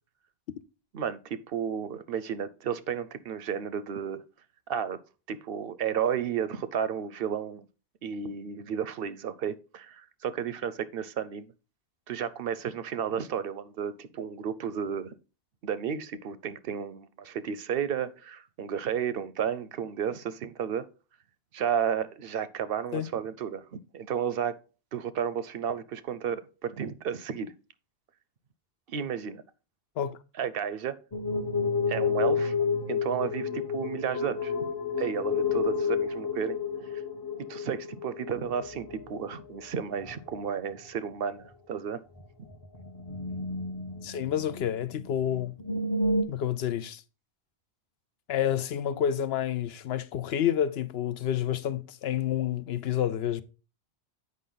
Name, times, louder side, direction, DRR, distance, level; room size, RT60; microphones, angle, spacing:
voice 1, 0.9-4.2 4.7-5.0 5.3-7.7 8.0-11.5 12.1-15.2 15.6-20.9 21.5-24.6 24.9-27.5 28.9-29.4 30.4-31.0 31.9-32.5 32.9-34.7 35.0-36.6 36.8-37.0 37.5-42.0, right 8 dB, 65° right, 0.7 m, -32 dB
sound 1, 31.1-39.6 39.9-40.5 40.8-40.9 41.4-41.5 42.5-44.7 45.0-45.1 45.3-46.2, left 4 dB, 25° left, 0.7 m, -30 dB
voice 2, 44.0-45.5 46.3-47.0 48.3-53.4, left 10 dB, 70° left, 0.8 m, -29 dB
8.5 x 5.3 x 3.9 m
omnidirectional pair, 1.1 m